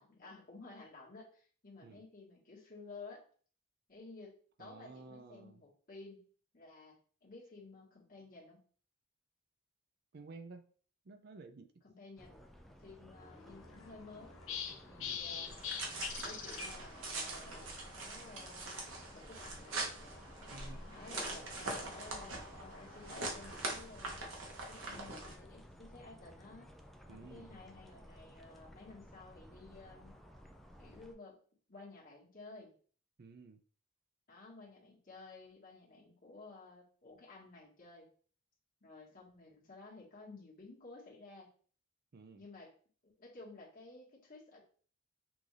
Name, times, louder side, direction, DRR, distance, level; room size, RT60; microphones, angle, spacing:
voice 1, 0.0-3.2 3.9-6.2 6.5-8.6 11.8-12.4 12.8-14.4 14.9-15.6 16.2-17.7 17.9-18.7 19.1-20.0 20.9-24.2 24.7-26.7 27.1-30.2 30.8-31.4 31.7-32.7 34.3-38.1 38.8-41.5 42.4-42.7 43.0-44.6, left 3 dB, 45° left, -4 dB, 1.8 m, -54 dB
voice 2, 4.6-5.6 10.1-10.7 11.1-11.7 15.0-15.2 20.5-20.8 27.1-27.6 33.2-33.6 42.1-42.4, right 3 dB, 50° right, 7 dB, 0.5 m, -53 dB
sound 1, 12.2-31.1, equal, ahead, 0.4 m, -56 dB
sound 2, 13.2-23.7, left 7 dB, 75° left, 0.8 m, -48 dB
sound 3, 15.5-25.3, right 2 dB, 80° right, 1.3 m, -43 dB
6.0 x 2.6 x 3.3 m, 0.43 s
head